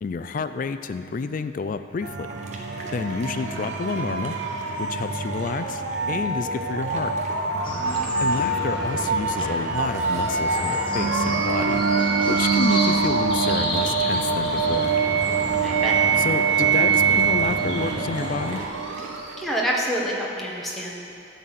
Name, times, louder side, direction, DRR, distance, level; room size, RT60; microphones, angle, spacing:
voice 1, 0.0-2.3 2.9-4.3 4.8-5.8 6.1-7.1 8.2-11.8 12.2-14.9 16.2-18.6, left 4 dB, 40° left, 10 dB, 0.3 m, -29 dB
sound 1, 2.0-19.5, right 5 dB, 70° right, 0.7 m, -24 dB
sound 2, 2.3-19.4, right 1 dB, 35° right, 0.9 m, -44 dB
sound 3, 7.6-18.6, left 1 dB, 25° left, 1.2 m, -32 dB
voice 2, 15.6-16.0 19.4-21.1, equal, ahead, -4 dB, 1.0 m, -27 dB
11.0 x 4.1 x 7.7 m, 2.6 s
head